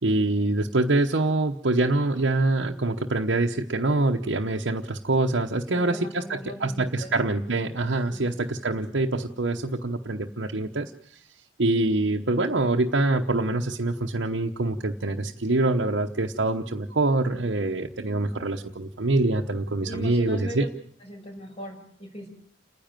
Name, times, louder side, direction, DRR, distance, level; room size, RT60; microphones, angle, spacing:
voice 1, 0.0-10.9 11.6-20.7, right 2 dB, 70° right, 0 dB, 1.0 m, -25 dB
voice 2, 5.7-7.1 8.1-8.4 19.8-20.7 21.0-22.3, equal, 30° left, 2 dB, 5.7 m, -39 dB
29.5 x 10.5 x 9.1 m, 0.65 s
head